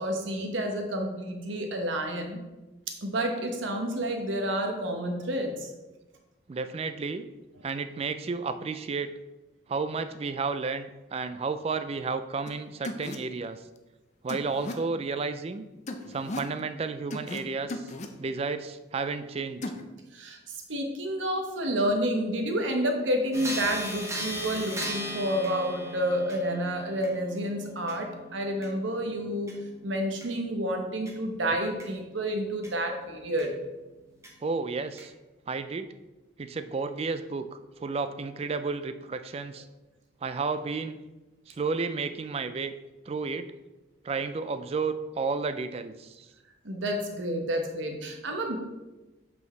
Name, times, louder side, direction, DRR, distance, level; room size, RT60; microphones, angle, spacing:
voice 1, 0.0-2.4 3.0-5.7 20.1-20.4 20.7-29.6 29.8-33.5 46.6-48.6, equal, 75° right, 3 dB, 0.9 m, -29 dB
voice 2, 6.5-7.3 7.6-9.1 9.7-13.6 14.2-15.6 16.1-17.9 18.2-19.6 34.4-35.1 35.5-35.9 36.4-39.7 40.2-41.0 41.5-42.7 43.1-43.5 44.0-46.3, right 4 dB, 30° right, 11 dB, 0.3 m, -32 dB
sound 1, 12.5-12.6 12.8-13.2 14.3-14.7 15.9-16.5 17.1-17.4 17.7-18.1 19.6-19.8, left 2 dB, 35° left, 0.5 m, -36 dB
sound 2, 23.3-32.7 33.4-33.5 34.2-34.3 35.0-35.1, equal, 15° right, 0.9 m, -39 dB
8.2 x 4.6 x 3.2 m, 1.1 s
head